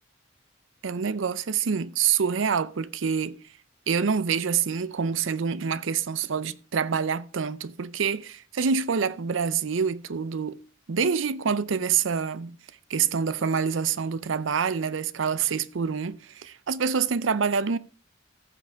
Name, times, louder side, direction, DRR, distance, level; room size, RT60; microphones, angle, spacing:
voice 1, 0.8-3.4 3.9-10.6 10.9-12.6 12.9-17.8, right 6 dB, 80° right, 0.6 m, -26 dB
14.5 x 5.9 x 4.7 m
head